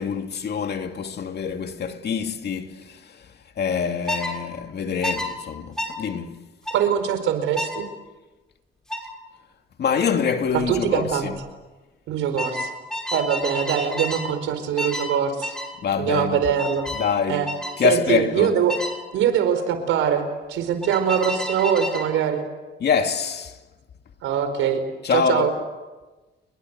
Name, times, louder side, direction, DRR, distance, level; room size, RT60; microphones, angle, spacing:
voice 1, 0.0-6.4 9.8-11.4 15.8-16.4 17.0-17.5 17.8-18.5 22.8-23.6 25.0-25.5, left 6 dB, 55° left, 2.5 m, -25 dB
sound 1, 4.1-4.3 5.0-5.3 5.8-6.0 6.7-6.8 7.6-7.8 8.9-9.1 10.6-10.8 11.1-11.5 12.4-14.3 14.8-15.1 15.4-15.7 16.6-17.1 17.5-17.8 18.7-19.0 20.8-22.1, left 1 dB, 5° left, 6.1 m, -30 dB
voice 2, 6.7-7.9 10.7-11.3 12.1-12.7 13.1-15.6 16.0-16.9 17.3-17.5 17.8-18.8 19.1-22.5 24.2-24.8 25.1-25.5, right 8 dB, 90° right, 4.5 m, -23 dB
30.0 x 22.0 x 8.2 m
cardioid pair, 90°, 20 cm